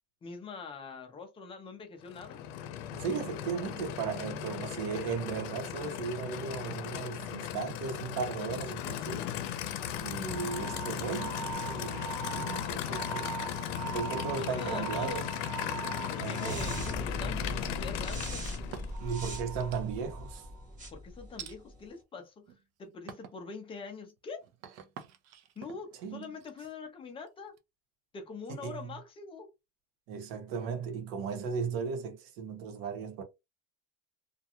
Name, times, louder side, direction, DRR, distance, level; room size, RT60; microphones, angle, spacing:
voice 1, 0.2-2.5 13.7-13.8 14.2-15.2 15.6-15.8 16.1-18.4 20.9-22.5 22.8-24.4 25.6-27.6 28.1-29.5, left 4 dB, 15° left, 0.5 m, -44 dB
Aircraft / Idling, 2.0-19.0, left 11 dB, 85° left, 0.7 m, -37 dB
voice 2, 2.9-9.3 10.0-11.4 11.7-13.3 13.9-15.2 16.2-16.6 19.0-20.5 26.0-26.3 28.5-28.9 30.1-33.2, right 6 dB, 65° right, 1.0 m, -36 dB
sound 1, 9.5-21.9, right 2 dB, 20° right, 1.0 m, -40 dB
sound 2, 17.2-18.0 18.5-19.2 19.6-20.2 21.4-21.6 22.3-22.7 23.1-23.4 23.9-27.6, right 8 dB, 45° right, 0.5 m, -49 dB
2.4 x 2.2 x 2.8 m
cardioid pair, 160°, 36 cm